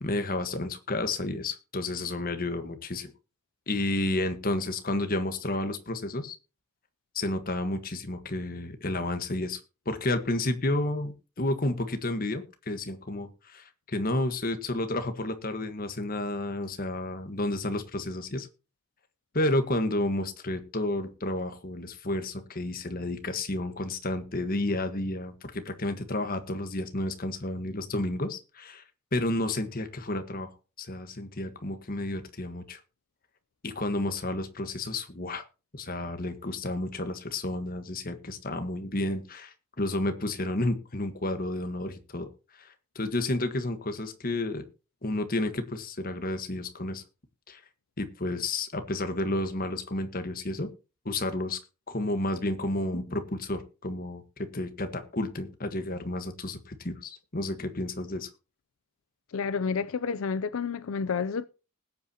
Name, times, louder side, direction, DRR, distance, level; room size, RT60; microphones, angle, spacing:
voice 1, 0.0-3.1 3.7-6.4 7.1-18.5 19.3-28.8 29.1-32.8 33.6-35.4 35.7-44.7 45.0-47.0 47.5-47.6 48.0-50.7 51.0-51.6 51.9-58.3, left 2 dB, 45° left, 1.4 m, -31 dB
voice 2, 59.3-61.5, left 5 dB, 85° left, 0.5 m, -30 dB
20.0 x 8.4 x 2.9 m
head